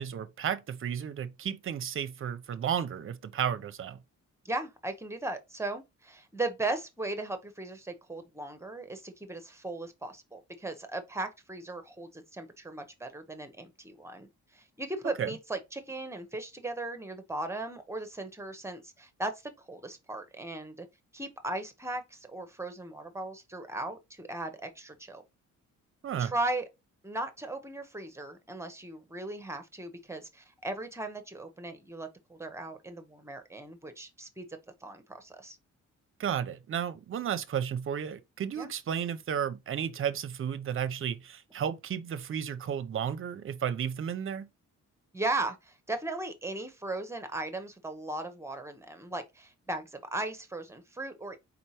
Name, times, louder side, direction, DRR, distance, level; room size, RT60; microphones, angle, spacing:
voice 1, 0.0-4.0 15.2-15.3 26.0-26.3 36.2-44.5, right 8 dB, 45° right, 0.6 m, -33 dB
voice 2, 4.4-20.9 21.1-25.2 26.2-26.7 27.0-34.5 34.8-35.6 38.6-38.7 45.1-51.4, right 2 dB, 10° right, 0.7 m, -37 dB
4.4 x 4.0 x 2.8 m
wide cardioid pair, 150°, 30 cm